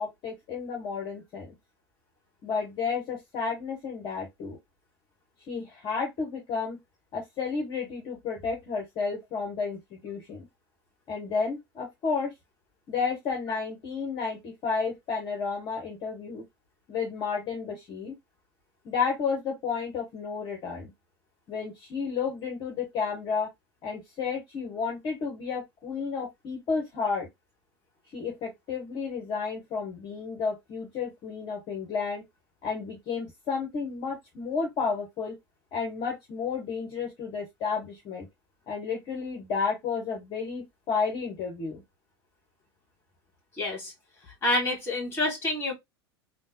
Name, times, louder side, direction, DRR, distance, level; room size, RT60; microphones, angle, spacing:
voice 1, 0.0-1.5 2.4-4.6 5.5-6.8 7.1-10.5 11.1-12.3 12.9-16.4 16.9-18.2 18.8-20.9 21.5-23.5 23.8-27.3 28.1-32.2 32.6-35.4 35.7-38.3 38.7-41.8, left 5 dB, 35° left, 1.0 m, -32 dB
voice 2, 43.6-43.9 44.4-45.7, left 1 dB, 20° left, 2.2 m, -27 dB
3.4 x 2.2 x 2.8 m
figure-of-eight pair, 85°, 13 cm